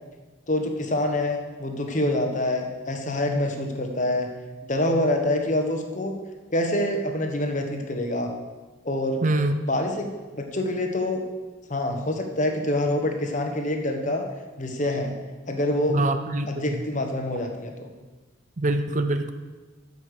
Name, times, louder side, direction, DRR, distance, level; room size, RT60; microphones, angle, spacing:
voice 1, 0.5-4.3 4.6-6.1 6.5-8.3 8.8-9.2 9.7-11.2 11.7-14.3 14.6-15.1 15.5-16.0 16.5-17.9, left 1 dB, 40° left, 4 dB, 1.2 m, -26 dB
voice 2, 9.2-9.6 15.9-16.5 18.6-19.3, right 2 dB, 40° right, 9 dB, 0.6 m, -24 dB
12.5 x 5.4 x 6.6 m, 1.3 s
head